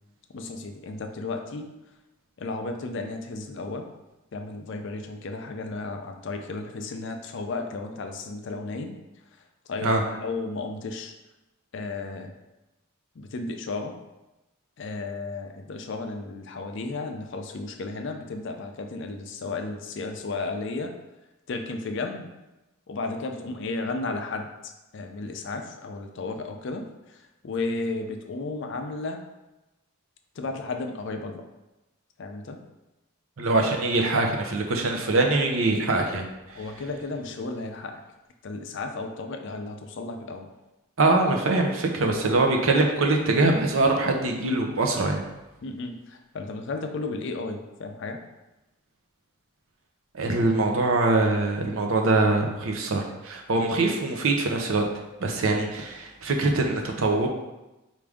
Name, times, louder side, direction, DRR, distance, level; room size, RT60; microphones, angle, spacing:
voice 1, 0.3-1.7 2.4-3.9 4.3-9.0 9.7-11.1 11.7-12.3 13.2-14.0 14.8-20.9 21.5-22.3 22.9-29.2 30.4-31.4 32.2-32.6 36.5-38.0 38.4-40.5 45.6-48.2, left 3 dB, 60° left, 5 dB, 0.4 m, -33 dB
voice 2, 33.4-36.3 41.0-45.2 50.1-54.9 55.2-57.3, right 2 dB, 70° right, 2 dB, 0.6 m, -23 dB
4.7 x 2.5 x 3.5 m, 1.0 s
head